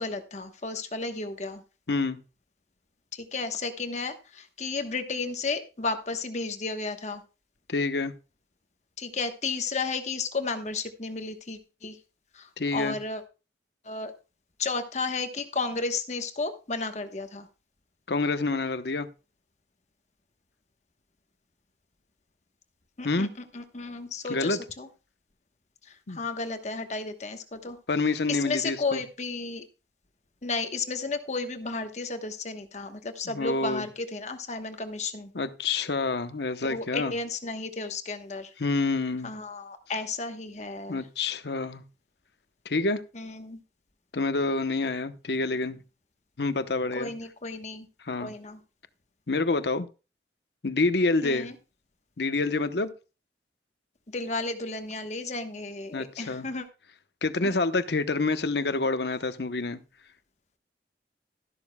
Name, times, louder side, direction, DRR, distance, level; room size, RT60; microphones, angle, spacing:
voice 1, 0.0-1.6 3.1-7.2 9.0-12.0 12.3-13.2 13.8-14.1 14.6-17.5 23.0-23.3 23.5-24.9 25.8-27.8 28.3-29.6 30.4-35.3 36.7-38.5 39.2-41.0 43.1-43.6 46.9-47.9 48.2-48.6 51.2-51.5 54.1-56.7 57.4-57.6, left 3 dB, 40° left, 1.1 m, -33 dB
voice 2, 1.9-2.2 7.7-8.1 12.6-13.0 18.1-19.1 23.0-23.3 24.3-24.6 26.1-26.2 27.9-29.0 33.2-33.9 35.3-37.1 38.6-39.3 40.9-41.8 42.6-43.0 44.1-45.8 46.4-47.1 48.0-48.3 49.3-49.9 50.6-51.5 52.2-52.9 55.9-56.5 57.2-59.8, left 3 dB, 70° left, 0.9 m, -27 dB
13.0 x 12.0 x 2.2 m
head